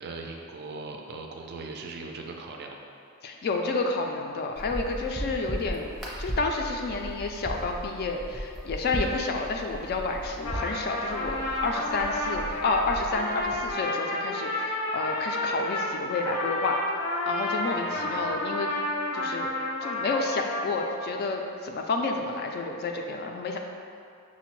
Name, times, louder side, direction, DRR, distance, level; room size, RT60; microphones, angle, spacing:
voice 1, 0.0-2.9 17.9-18.4, right 3 dB, 50° right, 2 dB, 0.4 m, -39 dB
voice 2, 3.2-5.9 6.2-16.8 17.3-18.7 19.1-19.5 19.8-23.6, left 3 dB, 45° left, 2 dB, 0.3 m, -30 dB
sound 1, 4.5-13.7, equal, ahead, 0.6 m, -37 dB
Trumpet, 10.4-21.1, left 1 dB, 90° left, 0.7 m, -31 dB
5.8 x 2.1 x 3.0 m, 2.4 s
head